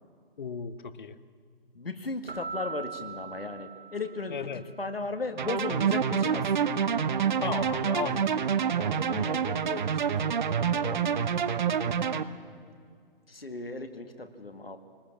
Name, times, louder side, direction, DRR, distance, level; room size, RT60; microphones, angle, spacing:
voice 1, 0.4-1.2 4.3-4.6 7.4-8.3, left 6 dB, 55° left, 13 dB, 1.1 m, -35 dB
voice 2, 1.7-6.5 8.8-11.2 13.3-14.8, left 3 dB, 80° left, 6 dB, 2.0 m, -37 dB
Keyboard (musical), 2.3-4.7, right 5 dB, 80° right, 1.0 m, -41 dB
sound 1, 5.4-12.2, right 7 dB, 50° right, 1.0 m, -27 dB
22.5 x 20.0 x 7.3 m, 2.2 s
figure-of-eight pair, 130°, 29 cm